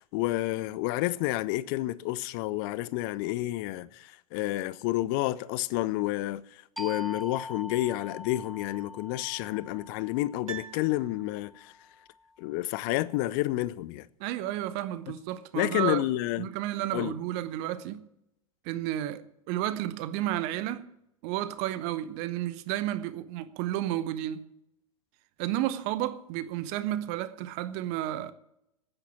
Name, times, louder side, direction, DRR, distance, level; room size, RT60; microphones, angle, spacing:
voice 1, 0.0-11.7 12.4-14.1 15.5-16.5 16.9-17.2, left 17 dB, 35° left, 0.6 m, -30 dB
sound 1, 6.8-12.1, left 2 dB, ahead, 1.0 m, -43 dB
Piano, 10.4-11.7 12.0-12.1, right 8 dB, 70° right, 0.9 m, -44 dB
voice 2, 14.2-16.0 16.4-18.0 18.6-20.9 21.2-24.5 25.4-28.3, right 13 dB, 40° right, 0.8 m, -32 dB
9.9 x 8.9 x 9.6 m
figure-of-eight pair, 95°, 18 cm